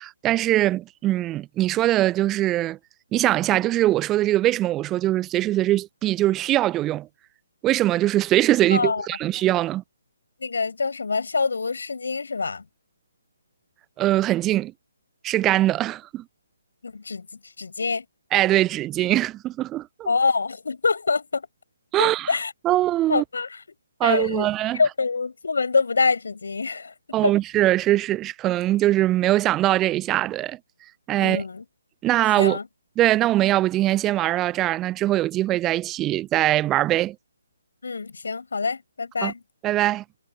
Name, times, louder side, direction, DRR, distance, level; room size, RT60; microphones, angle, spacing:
voice 1, 0.0-2.8 3.1-7.1 7.6-9.8 14.0-14.7 15.2-16.2 18.3-20.1 21.9-22.3 22.6-23.2 24.0-24.8 27.1-30.6 31.1-31.4 32.0-32.6 33.0-37.2 39.2-39.3 39.6-40.0, right 15 dB, 15° right, 0.6 m, -22 dB
voice 2, 8.7-9.1 10.4-12.6 16.8-17.3 17.6-18.1 20.1-21.5 22.0-22.5 23.1-23.6 24.0-26.9 27.2-27.4 31.2-31.6 32.4-32.7 37.8-39.4, left 4 dB, 60° left, 7.2 m, -25 dB
figure-of-eight pair, 140°, 0 cm